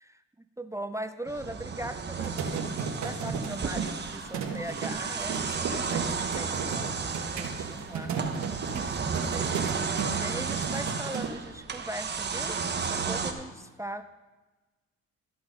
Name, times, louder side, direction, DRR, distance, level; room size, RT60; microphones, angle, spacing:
voice 1, 0.6-8.2 8.7-9.6 10.1-14.0, right 1 dB, 10° right, 10 dB, 0.4 m, -40 dB
sound 1, 1.3-13.3, right 5 dB, 35° right, 1.0 m, -33 dB
sound 2, 2.2-11.3, right 5 dB, 65° right, 1.3 m, -34 dB
13.5 x 6.1 x 5.1 m, 1.2 s
cardioid pair, 90°, 30 cm